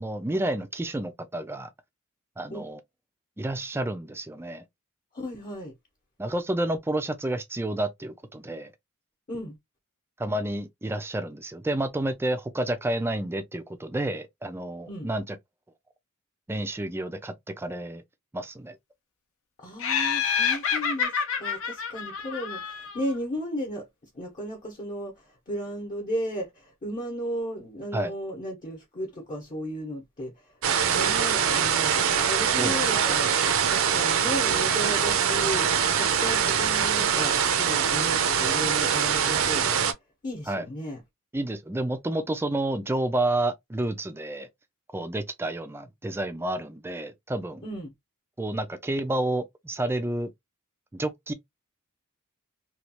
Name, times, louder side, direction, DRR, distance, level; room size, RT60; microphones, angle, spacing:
voice 1, 0.0-1.7 2.4-2.8 3.4-4.6 6.2-8.7 10.2-15.4 16.5-18.0 18.3-18.8 27.9-28.1 32.6-32.8 33.1-33.2 40.5-40.7 41.3-44.5 44.9-47.6 48.4-50.3 50.9-51.3, right 1 dB, 10° right, 0.4 m, -30 dB
voice 2, 5.1-5.7 9.3-9.5 14.9-15.1 19.6-23.9 24.1-30.5 30.8-33.3 33.7-39.8 40.2-41.0 47.6-47.9, equal, 35° left, 0.9 m, -35 dB
Laughter, 19.8-23.1, left 6 dB, 65° left, 0.6 m, -28 dB
sound 1, 30.6-39.9, right 7 dB, 65° right, 0.5 m, -23 dB
3.1 x 2.3 x 2.9 m
head